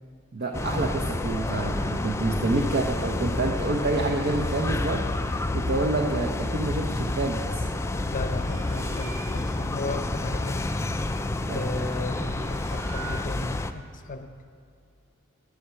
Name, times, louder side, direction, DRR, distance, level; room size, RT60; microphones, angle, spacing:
voice 1, 0.3-7.6 11.5-12.0, right 2 dB, 50° right, 1 dB, 0.7 m, -28 dB
sound 1, 0.5-13.7, left 2 dB, 15° left, 0.3 m, -29 dB
voice 2, 8.1-10.6 11.5-14.3, left 2 dB, 40° left, 8 dB, 0.7 m, -35 dB
sound 2, 8.2-9.7 11.6-13.7, right 3 dB, 75° right, 0.9 m, -42 dB
9.9 x 9.2 x 5.7 m, 2.4 s
head